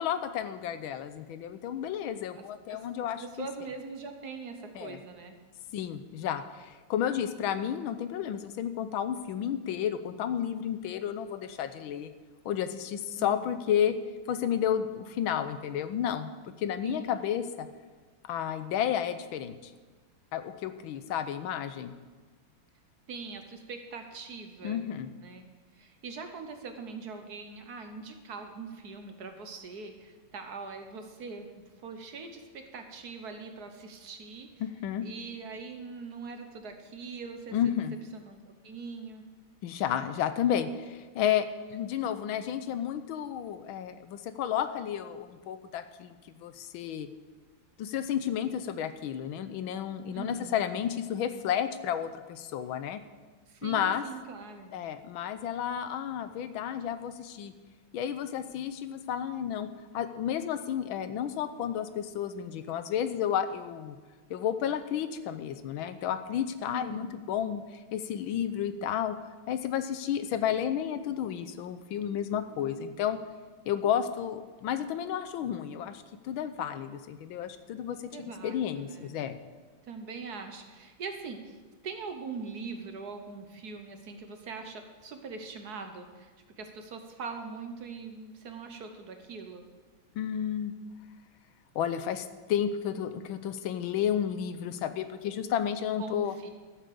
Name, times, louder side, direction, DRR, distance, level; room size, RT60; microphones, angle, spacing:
voice 1, 0.0-3.5 4.7-5.0 5.7-12.1 12.4-13.9 14.3-17.7 18.2-19.7 20.3-21.9 24.6-25.1 34.6-35.0 37.5-37.9 39.6-47.1 47.8-53.0 53.6-54.0 54.7-57.5 57.9-59.7 59.9-64.0 64.3-69.1 69.5-73.2 73.7-79.4 90.1-90.7 91.7-96.3, left 9 dB, 85° left, 11 dB, 1.5 m, -32 dB
voice 2, 3.2-5.3 13.1-13.5 16.8-17.3 23.1-24.8 25.2-25.4 25.7-31.5 31.8-34.5 35.0-37.8 38.1-38.4 38.6-39.2 50.1-50.5 53.5-54.7 66.7-67.2 78.0-79.2 79.8-81.6 81.8-86.3 86.6-89.6 96.0-96.5, right 4 dB, 55° right, 6 dB, 1.5 m, -42 dB
13.0 x 7.5 x 6.9 m, 1.4 s
omnidirectional pair, 2.2 m